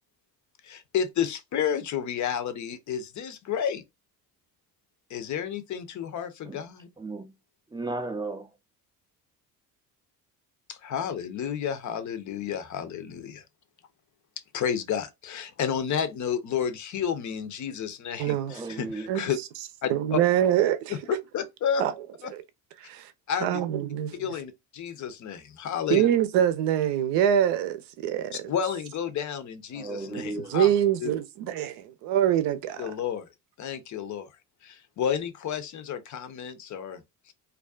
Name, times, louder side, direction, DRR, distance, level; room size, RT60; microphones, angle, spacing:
voice 1, 0.6-3.8 5.1-6.9 10.7-13.4 14.5-19.4 19.8-20.2 20.9-21.8 22.2-22.3 23.3-23.6 24.2-26.1 28.3-30.7 31.0-31.1 32.8-33.3 33.6-34.3 34.6-37.0, left 8 dB, 40° left, 0.6 m, -31 dB
voice 2, 7.0-7.3 7.7-8.5 18.5-19.1 29.7-30.6, right 2 dB, 10° right, 0.4 m, -35 dB
voice 3, 18.2-18.6 19.1-19.3 19.9-20.9 21.8-21.9 22.2-22.4 22.8-23.1 23.4-24.3 25.9-28.4 30.4-32.9, right 10 dB, 70° right, 0.6 m, -25 dB
2.4 x 2.3 x 2.3 m
hypercardioid pair, 60°, 45 cm